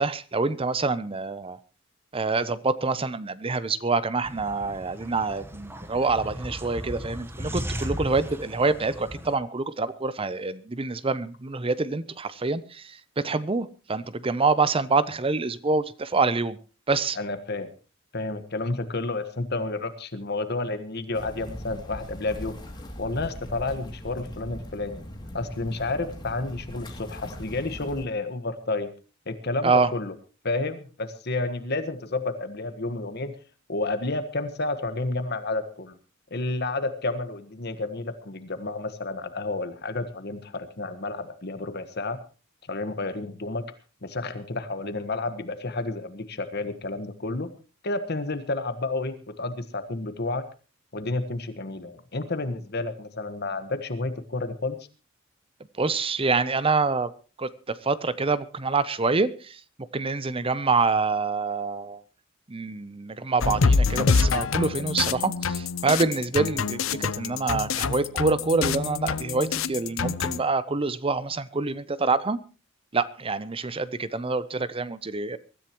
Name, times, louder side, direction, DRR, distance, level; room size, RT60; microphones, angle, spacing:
voice 1, 0.0-1.6 2.1-16.6 16.9-17.2 29.6-29.9 55.8-57.1 57.4-59.6 59.9-62.0 62.5-72.4 72.9-75.4, right 3 dB, 25° right, 16 dB, 0.7 m, -26 dB
sound 1, 4.2-9.3, equal, 10° right, 1.2 m, -36 dB
voice 2, 17.1-17.7 18.1-22.5 23.0-25.0 25.3-28.9 29.3-30.1 30.4-33.3 33.7-35.9 36.3-42.2 42.7-43.6 44.0-47.5 47.8-50.4 50.9-54.9, left 2 dB, 50° left, 10 dB, 1.4 m, -30 dB
sound 2, 21.1-28.1, equal, 20° left, 2.7 m, -40 dB
sound 3, 63.4-70.4, left 5 dB, 75° left, 0.6 m, -26 dB
23.5 x 13.5 x 3.0 m, 0.34 s
head